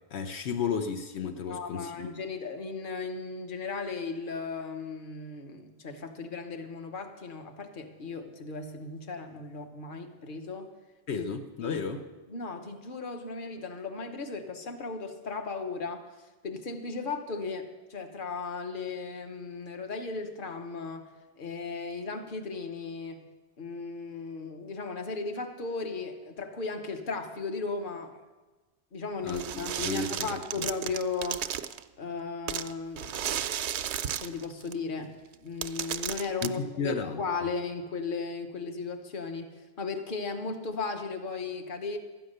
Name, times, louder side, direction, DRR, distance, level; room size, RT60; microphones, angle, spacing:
voice 1, 0.1-2.1 11.1-12.1 29.2-30.3 30.6-30.7 36.4-37.2, left 5 dB, 80° left, 6 dB, 1.0 m, -33 dB
voice 2, 1.5-10.7 11.2-11.3 11.6-11.8 12.3-16.0 16.4-21.1 21.4-23.2 23.6-28.3 28.9-31.4 32.0-33.2 34.2-35.1 35.4-39.5 39.8-42.0, left 4 dB, 55° left, 6 dB, 1.2 m, -36 dB
sound 1, 29.3-31.8 32.5-34.7 35.3-35.4 35.6-36.5, right 9 dB, 85° right, 0.9 m, -34 dB
13.0 x 9.3 x 6.5 m, 1.2 s
omnidirectional pair, 1.1 m